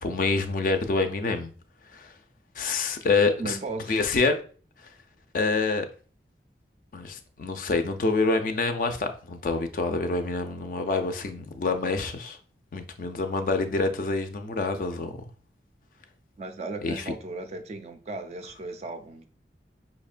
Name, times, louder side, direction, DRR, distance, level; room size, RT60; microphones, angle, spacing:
voice 1, 0.0-1.5 1.9-2.1 2.6-3.6 3.9-4.4 5.3-5.9 6.9-12.4 12.7-15.2 16.8-17.1, left 3 dB, 45° left, 0.3 m, -26 dB
voice 2, 3.4-4.0 16.4-19.3, right 2 dB, 35° right, 0.3 m, -36 dB
5.4 x 2.1 x 2.4 m
head